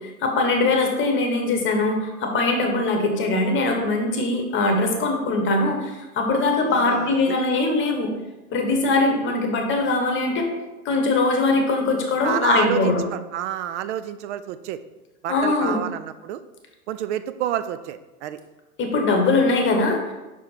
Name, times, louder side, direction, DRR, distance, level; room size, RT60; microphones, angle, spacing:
voice 1, 0.0-8.1 8.5-10.5 10.8-13.0 15.3-15.8 18.8-20.1, left 3 dB, 25° left, 3 dB, 1.1 m, -21 dB
voice 2, 6.7-7.4 12.2-14.8 15.2-16.4 16.9-18.4, right 11 dB, 50° right, 13 dB, 0.5 m, -29 dB
5.9 x 4.4 x 4.0 m, 1.1 s
hypercardioid pair, 105°, 45 cm